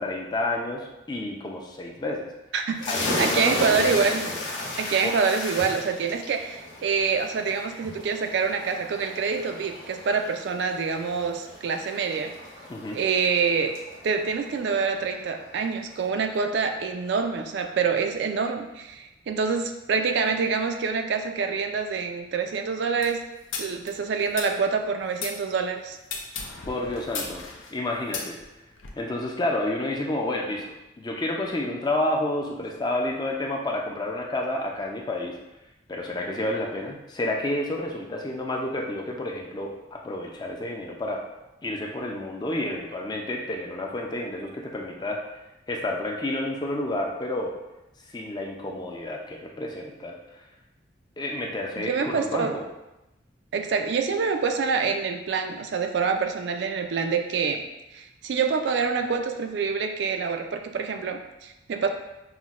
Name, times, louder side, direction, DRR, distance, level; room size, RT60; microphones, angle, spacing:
voice 1, 0.0-2.3 2.9-3.8 5.0-5.2 12.7-13.0 26.7-27.4 27.7-28.4 29.0-30.6 31.0-35.3 35.9-41.2 41.6-45.2 45.7-47.5 48.1-50.2 51.2-52.6, left 1 dB, 20° left, 0 dB, 0.4 m, -30 dB
voice 2, 2.5-2.9 3.2-4.3 4.8-12.3 12.9-13.7 14.0-23.2 23.6-26.0 51.8-52.6 53.5-57.6 57.9-61.9, right 5 dB, 60° right, 5 dB, 0.3 m, -26 dB
sound 1, 2.8-16.1, left 2 dB, 70° left, 0.9 m, -35 dB
sound 2, 23.0-25.4 26.0-28.9, left 4 dB, 85° left, 0.5 m, -36 dB
5.6 x 2.1 x 2.4 m, 0.97 s
head